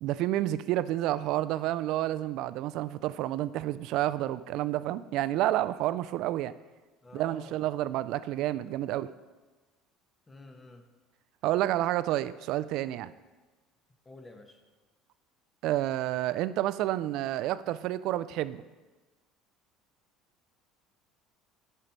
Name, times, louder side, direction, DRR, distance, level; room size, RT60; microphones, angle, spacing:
voice 1, 0.0-6.5 7.1-9.1 11.4-13.1 15.6-18.6, right 14 dB, 65° right, 14 dB, 0.3 m, -29 dB
voice 2, 7.0-7.6 10.3-10.9 14.0-14.6, left 2 dB, 20° left, 5 dB, 1.2 m, -49 dB
11.0 x 5.6 x 4.6 m, 1.2 s
supercardioid pair, 95°, 0 cm